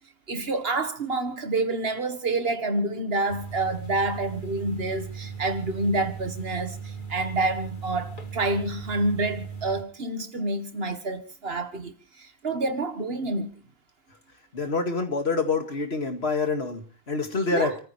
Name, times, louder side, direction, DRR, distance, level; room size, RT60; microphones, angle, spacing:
voice 1, 0.3-11.9 12.2-13.5 17.5-17.8, right 2 dB, 70° right, 1.9 m, -28 dB
sound 1, 3.3-9.8, right 6 dB, 50° left, 2.6 m, -38 dB
voice 2, 14.5-17.7, left 4 dB, 85° left, 2.3 m, -26 dB
29.0 x 14.5 x 3.2 m
omnidirectional pair, 1.0 m